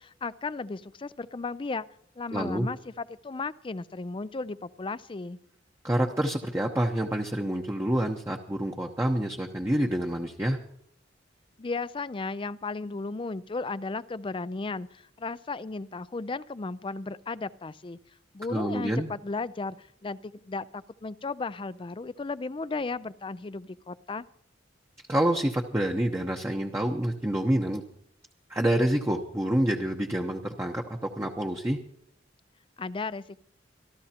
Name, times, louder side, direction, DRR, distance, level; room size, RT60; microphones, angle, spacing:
voice 1, 0.0-1.9 2.2-5.4 11.6-18.0 18.3-24.2 32.8-33.4, left 3 dB, 30° left, 16 dB, 0.4 m, -35 dB
voice 2, 2.3-2.7 5.8-10.6 18.5-19.1 25.1-27.8 28.5-31.8, right 1 dB, 15° right, 1 dB, 0.9 m, -27 dB
26.5 x 13.0 x 2.9 m, 0.67 s
head